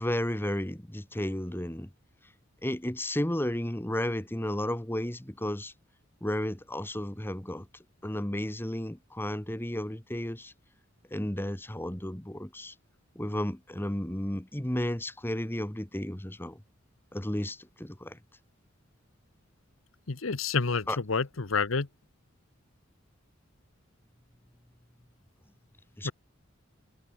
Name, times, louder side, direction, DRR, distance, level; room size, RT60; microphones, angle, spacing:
voice 1, 0.0-1.9 2.6-5.7 6.2-7.6 8.0-10.5 11.1-12.7 13.1-16.6 17.1-18.2 20.9-21.0 26.0-26.1, left 1 dB, 10° left, 1.4 m, -33 dB
voice 2, 20.1-21.9 26.0-26.1, left 4 dB, 85° left, 1.0 m, -29 dB
head